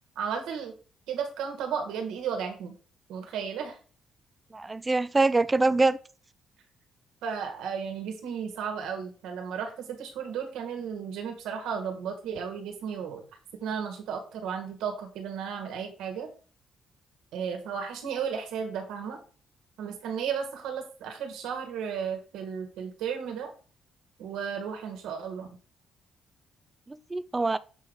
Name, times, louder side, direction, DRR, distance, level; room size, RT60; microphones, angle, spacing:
voice 1, 0.1-0.7 1.1-2.7 3.1-3.8 7.2-13.2 13.6-16.3 17.3-19.2 19.8-23.5 24.2-25.5, right 7 dB, 90° right, 1.5 m, -34 dB
voice 2, 4.5-6.0 26.9-27.6, right 3 dB, 20° right, 0.3 m, -24 dB
7.1 x 3.8 x 3.5 m
cardioid pair, 90°, 0 cm